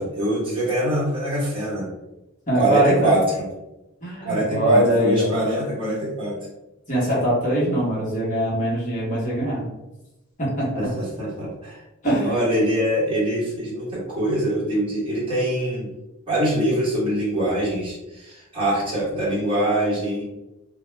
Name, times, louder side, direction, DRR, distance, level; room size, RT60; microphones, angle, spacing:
voice 1, 0.0-1.9 2.5-3.5 4.2-6.4 10.7-11.8 12.2-15.9 16.3-20.2, right 1 dB, 25° right, -7 dB, 1.0 m, -24 dB
voice 2, 2.5-3.2 4.0-5.3 6.9-9.7 10.4-10.9 12.0-12.3, right 1 dB, 35° left, -7 dB, 1.0 m, -22 dB
2.3 x 2.2 x 3.1 m, 0.96 s
head